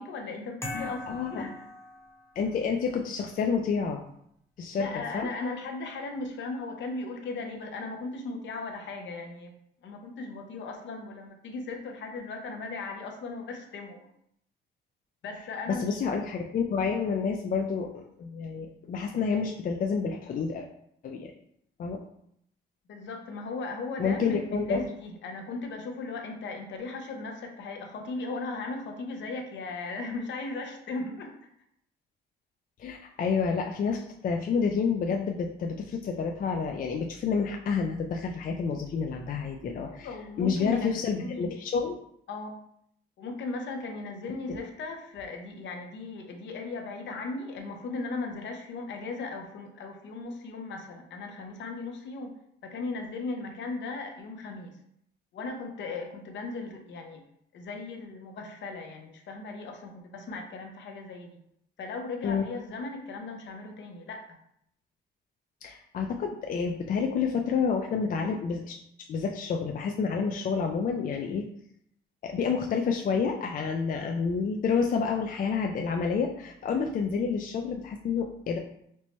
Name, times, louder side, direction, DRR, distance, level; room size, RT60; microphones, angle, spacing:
voice 1, 0.0-1.7 4.7-9.5 9.8-14.1 15.2-16.0 22.9-31.4 39.9-41.6 42.3-42.6 43.2-52.4 52.6-54.8 55.3-57.2 57.5-61.4 61.8-64.3, left 3 dB, 65° left, 3 dB, 0.7 m, -37 dB
sound 1, 0.6-2.5, left 1 dB, 15° left, 0.8 m, -40 dB
voice 2, 0.7-1.4 2.4-4.0 4.6-5.3 15.7-20.7 21.0-21.3 21.8-22.0 24.0-24.9 32.8-40.1 40.4-42.0 62.2-62.4 65.6-68.8 69.1-71.5 72.2-78.6, left 5 dB, 45° left, 3 dB, 0.4 m, -29 dB
4.4 x 2.1 x 3.0 m, 0.72 s
cardioid pair, 90°, 20 cm